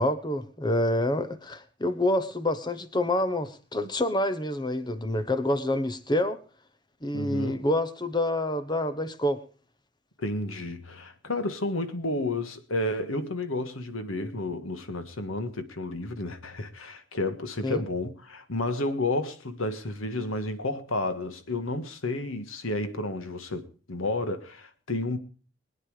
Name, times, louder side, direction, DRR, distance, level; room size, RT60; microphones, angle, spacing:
voice 1, 0.0-6.4 7.0-9.4 17.6-17.8, left 1 dB, 20° left, 1.0 m, -27 dB
voice 2, 7.1-7.7 10.2-25.2, left 2 dB, 90° left, 1.6 m, -31 dB
21.0 x 9.5 x 5.0 m
head